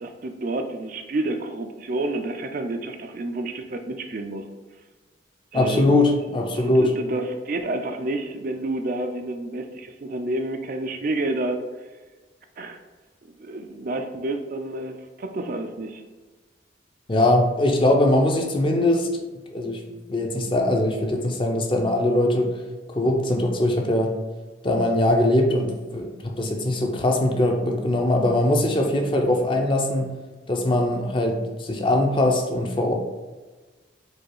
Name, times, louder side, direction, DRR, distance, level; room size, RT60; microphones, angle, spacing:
voice 1, 0.0-4.4 5.5-5.8 6.6-11.6 12.6-12.8 13.4-16.0, right 2 dB, 50° right, 6 dB, 0.4 m, -29 dB
voice 2, 5.5-6.9 17.1-19.2 19.5-19.8 20.1-22.6 22.9-24.1 24.6-30.1 30.5-32.9, left 1 dB, 25° left, 2 dB, 0.5 m, -21 dB
4.8 x 2.3 x 4.6 m, 1.3 s
head